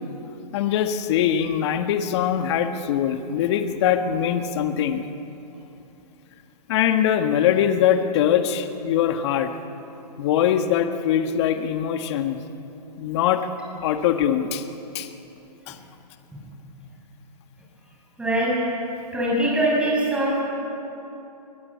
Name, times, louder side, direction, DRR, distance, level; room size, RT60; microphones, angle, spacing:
voice 1, 0.5-5.1 6.7-9.5 10.2-12.4 13.0-13.5 13.8-14.6 14.9-15.1 15.7-15.8, left 9 dB, 40° left, 7 dB, 1.6 m, -22 dB
voice 2, 18.2-18.6 19.1-20.4, right 1 dB, 5° right, -5 dB, 6.3 m, -22 dB
22.0 x 21.5 x 8.6 m, 2.9 s
hypercardioid pair, 145°, 21 cm